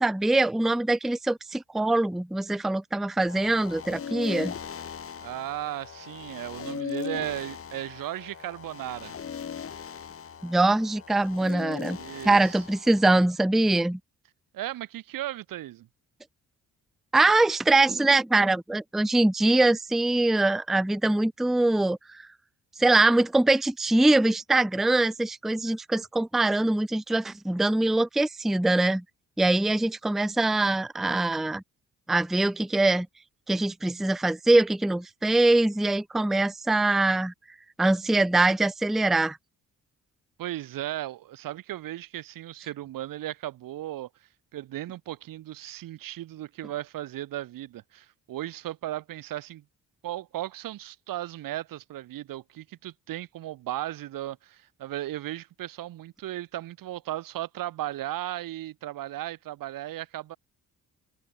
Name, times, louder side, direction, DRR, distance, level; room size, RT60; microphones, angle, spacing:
voice 1, 0.0-4.5 10.4-12.0 12.2-14.0 17.1-22.2 22.8-29.0 29.4-31.6 32.1-33.1 33.5-37.3 37.8-39.4, right 2 dB, ahead, 0.5 m, -23 dB
sound 1, 3.3-13.1, left 7 dB, 40° left, 1.8 m, -39 dB
voice 2, 5.2-9.1 11.9-12.6 14.5-15.9 40.4-44.1 44.5-49.6 50.0-60.4, right 14 dB, 80° right, 1.9 m, -36 dB
cardioid pair, 90°, 33 cm